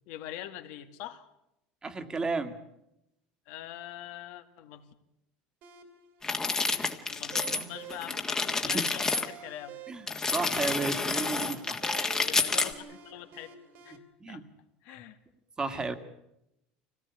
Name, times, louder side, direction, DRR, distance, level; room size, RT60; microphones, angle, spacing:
voice 1, 0.1-1.3 3.5-4.9 7.1-9.7 12.2-13.6 13.8-14.4 14.8-15.2 15.7-16.0, left 13 dB, 70° left, 8 dB, 1.9 m, -43 dB
voice 2, 1.8-2.6 8.6-8.9 9.9-10.1 10.3-11.8 13.9-14.4 14.9-15.0 15.6-16.0, right 3 dB, 20° right, 9 dB, 1.9 m, -33 dB
sound 1, 5.6-14.0, right 7 dB, 60° right, 3.1 m, -50 dB
sound 2, 6.2-7.7 7.9-9.3 10.1-12.7, left 3 dB, 15° left, 1.6 m, -29 dB
24.5 x 17.5 x 8.4 m, 0.85 s
supercardioid pair, 120°, 4 cm